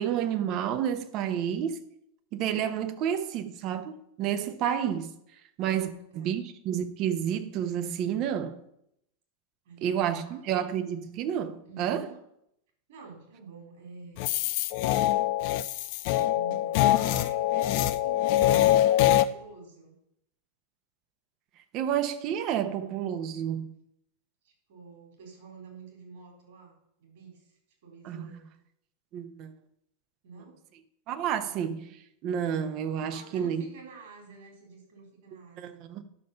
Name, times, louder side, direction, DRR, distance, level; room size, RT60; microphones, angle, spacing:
voice 1, 0.0-1.8 2.3-5.1 5.6-8.6 9.8-12.1 21.7-23.7 28.0-28.3 29.1-29.5 31.1-33.6 35.6-36.0, right 9 dB, 40° right, 0.9 m, -30 dB
voice 2, 5.6-6.3 9.6-10.4 11.6-12.2 12.9-14.4 16.3-19.9 24.4-28.4 30.2-30.6 33.1-35.8, right 4 dB, 55° right, 4.1 m, -48 dB
sound 1, 14.2-19.2, left 13 dB, 45° left, 0.5 m, -24 dB
11.0 x 6.4 x 5.6 m
figure-of-eight pair, 90°, 0 cm